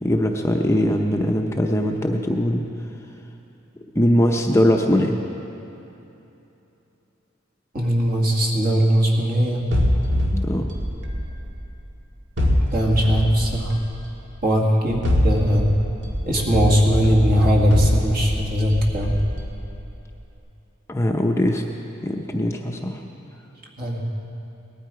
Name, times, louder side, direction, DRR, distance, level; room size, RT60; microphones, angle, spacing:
voice 1, 0.0-2.7 3.9-5.2 10.3-10.7 20.9-21.6 22.0-23.0, equal, 15° left, 2 dB, 0.7 m, -21 dB
voice 2, 7.7-9.6 12.7-13.8 14.4-15.7 16.3-19.1 23.8-24.0, equal, 50° right, -2 dB, 2.1 m, -20 dB
sound 1, 9.7-11.8 12.4-14.2 14.9-19.9, left 1 dB, 65° right, 1.8 m, -24 dB
19.0 x 12.5 x 4.9 m, 2.9 s
head